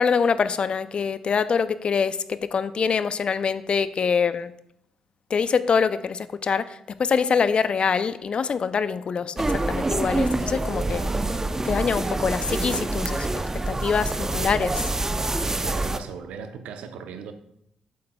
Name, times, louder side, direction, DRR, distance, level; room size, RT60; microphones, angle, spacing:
voice 1, 0.0-4.5 5.3-9.3 9.7-11.0 11.6-13.3 13.7-14.8, left 6 dB, 55° left, 14 dB, 0.4 m, -24 dB
sound 1, 9.4-16.0, right 2 dB, 20° right, 0.5 m, -26 dB
voice 2, 15.6-17.3, right 6 dB, 80° right, 8 dB, 0.6 m, -38 dB
8.5 x 7.5 x 2.2 m, 0.77 s
supercardioid pair, 55°, 2 cm